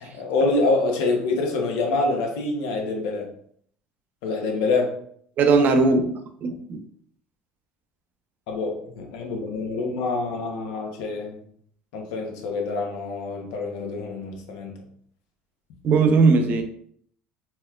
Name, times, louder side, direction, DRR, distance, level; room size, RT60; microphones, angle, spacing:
voice 1, 0.0-3.3 4.2-4.9 8.5-11.4 11.9-14.8, left 3 dB, 75° left, 1 dB, 0.8 m, -26 dB
voice 2, 5.4-6.6 15.8-16.6, right 4 dB, 50° right, 6 dB, 0.6 m, -18 dB
4.2 x 2.1 x 2.3 m, 0.63 s
supercardioid pair, 85°, 4 cm